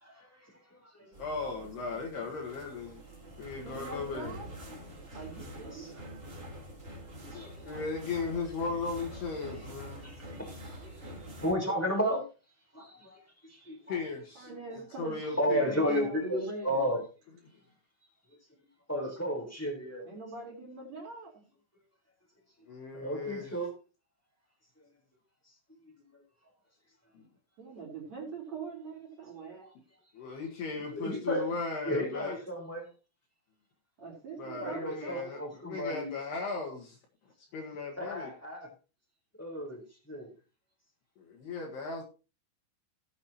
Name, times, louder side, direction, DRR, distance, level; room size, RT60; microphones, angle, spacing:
voice 1, 0.0-1.1 4.2-4.3 4.7-4.9 5.4-5.5 5.7-5.9 7.3-7.8 10.0-12.2 12.7-13.2 13.5-13.9 15.4-17.0 18.9-20.0 22.9-23.7 30.8-31.5 31.8-32.8 34.6-36.1 38.0-38.7 39.4-40.3, equal, 5° left, 3.0 m, -33 dB
sound 1, 1.1-11.5, equal, 20° right, 2.9 m, -46 dB
voice 2, 1.2-3.0 3.4-4.4 7.3-10.1 13.9-15.8 22.7-23.6 27.1-27.2 30.1-32.4 34.4-37.0 37.5-38.3 41.2-42.0, left 4 dB, 65° left, 3.3 m, -37 dB
voice 3, 3.6-4.5 5.1-6.0 14.4-16.9 20.0-21.3 27.6-29.7 34.0-35.5, right 3 dB, 35° right, 4.6 m, -43 dB
18.0 x 8.4 x 2.9 m
omnidirectional pair, 5.9 m